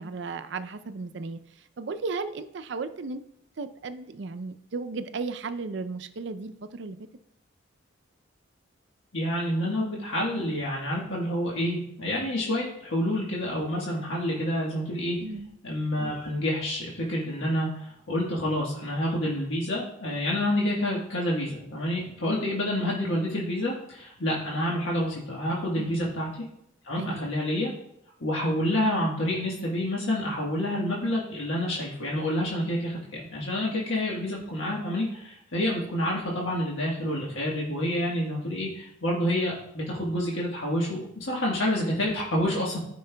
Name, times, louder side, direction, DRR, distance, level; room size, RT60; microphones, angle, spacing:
voice 1, 0.0-1.4 1.8-3.2 3.6-7.0 15.2-15.5 25.7-26.1 27.0-27.3, right 4 dB, 65° right, 11 dB, 0.5 m, -35 dB
voice 2, 9.1-15.2 15.6-26.4 26.8-27.7 28.2-42.8, left 1 dB, 85° left, -4 dB, 1.4 m, -28 dB
14.0 x 5.3 x 2.2 m, 0.76 s
head